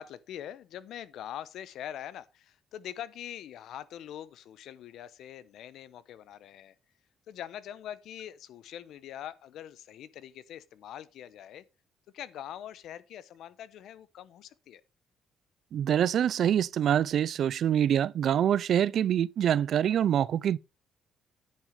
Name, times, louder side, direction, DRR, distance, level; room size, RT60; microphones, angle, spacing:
voice 1, 0.0-6.7 7.3-11.6 12.1-14.8, left 10 dB, 80° left, 0.9 m, -43 dB
voice 2, 15.7-20.6, right 9 dB, 65° right, 0.4 m, -25 dB
10.0 x 6.1 x 5.2 m
cardioid pair, 90°, 0 cm